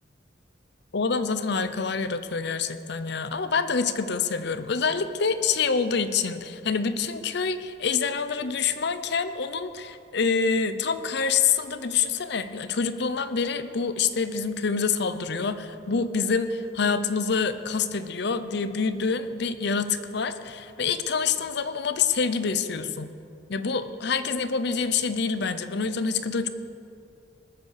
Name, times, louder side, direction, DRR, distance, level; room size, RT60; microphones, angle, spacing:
voice 1, 0.9-23.1 23.5-26.5, left 5 dB, 60° left, 11 dB, 0.7 m, -26 dB
19.5 x 8.1 x 6.6 m, 2.5 s
head